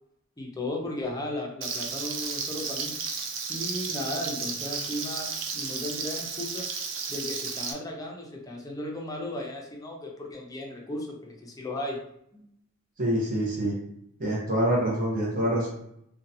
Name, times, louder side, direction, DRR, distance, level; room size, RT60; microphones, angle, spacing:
voice 1, 0.4-2.9 3.5-6.7 7.1-12.0 12.3-12.4, left 1 dB, 15° left, -1 dB, 0.5 m, -35 dB
Frying (food), 1.6-7.7, right 5 dB, 65° right, 0.4 m, -33 dB
voice 2, 13.0-13.7 14.2-15.7, right 1 dB, 40° right, -5 dB, 0.8 m, -26 dB
2.7 x 2.2 x 2.6 m, 0.73 s
head